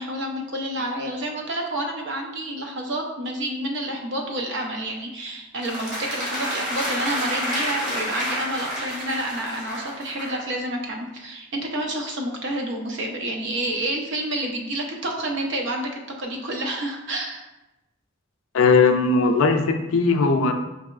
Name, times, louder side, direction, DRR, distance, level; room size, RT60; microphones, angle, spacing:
voice 1, 0.0-17.4, right 1 dB, 60° right, 1 dB, 0.6 m, -29 dB
sound 1, 5.6-10.4, equal, 35° right, 1.1 m, -29 dB
voice 2, 18.5-20.5, left 4 dB, 70° left, 5 dB, 0.4 m, -18 dB
4.6 x 2.9 x 2.4 m, 0.98 s
head